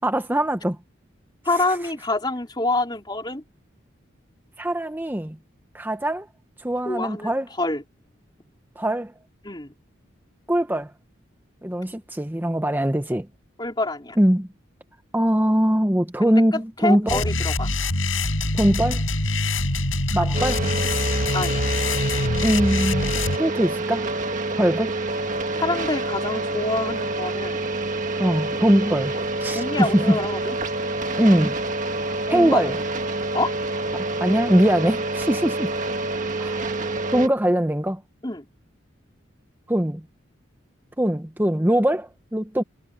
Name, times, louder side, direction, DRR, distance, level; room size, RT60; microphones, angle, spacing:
voice 1, 0.0-0.8 4.6-5.4 5.7-6.3 6.6-7.5 8.8-9.1 10.5-10.9 11.6-13.3 14.2-14.5 15.1-17.2 18.5-19.0 20.1-20.7 22.4-23.1 23.4-24.1 24.6-24.9 28.2-29.1 29.4-30.2 31.2-31.6 32.3-32.8 33.9-35.7 36.4-36.6 37.1-38.0 39.7-40.0 41.0-42.6, equal, 10° right, 0.8 m, -21 dB
voice 2, 1.4-3.4 6.8-7.8 9.4-9.7 13.6-14.2 16.2-16.4 16.8-17.7 20.2-20.3 21.3-21.7 25.6-27.6 28.9-29.0 29.5-30.6 32.3-32.6 33.3-33.5 38.2-38.4, left 2 dB, 20° left, 3.7 m, -26 dB
sound 1, 17.1-23.4, left 2 dB, 85° left, 6.0 m, -24 dB
sound 2, 20.3-37.3, right 2 dB, 40° right, 1.7 m, -27 dB
head